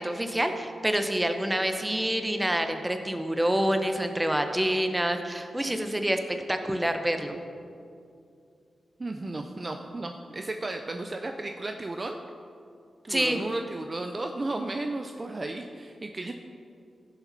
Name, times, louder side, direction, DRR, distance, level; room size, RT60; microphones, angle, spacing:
voice 1, 0.0-7.4 13.1-13.4, right 1 dB, 10° right, 6 dB, 0.8 m, -27 dB
voice 2, 9.0-12.2 13.0-16.3, right 2 dB, 30° right, 4 dB, 0.5 m, -34 dB
15.0 x 7.2 x 4.1 m, 2.4 s
wide cardioid pair, 105°, 0 cm